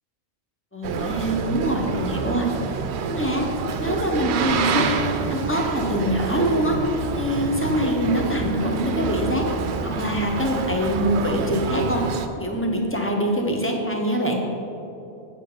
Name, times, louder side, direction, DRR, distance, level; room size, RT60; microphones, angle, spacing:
voice 1, 0.7-2.5 3.0-3.4 3.8-5.0 5.3-6.8 7.1-9.4 9.8-12.0 12.4-14.4, equal, 15° left, 0 dB, 0.8 m, -24 dB
Boat Water vehicle, 0.8-12.3, right 5 dB, 75° right, 0.8 m, -27 dB
7.8 x 7.5 x 3.8 m, 2.8 s
omnidirectional pair, 1.1 m